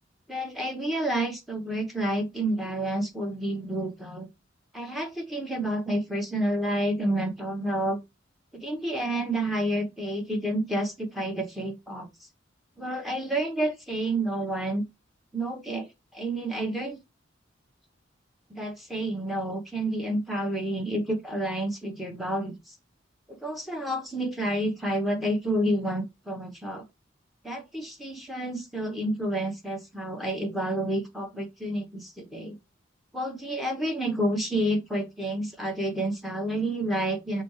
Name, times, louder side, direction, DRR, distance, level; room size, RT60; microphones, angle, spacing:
voice 1, 0.3-4.3 4.7-8.0 8.5-12.1 12.8-14.8 15.3-17.0 18.5-22.8 23.3-26.8 27.4-32.5 33.1-37.4, right 1 dB, ahead, 0.9 m, -29 dB
6.0 x 2.7 x 3.0 m
head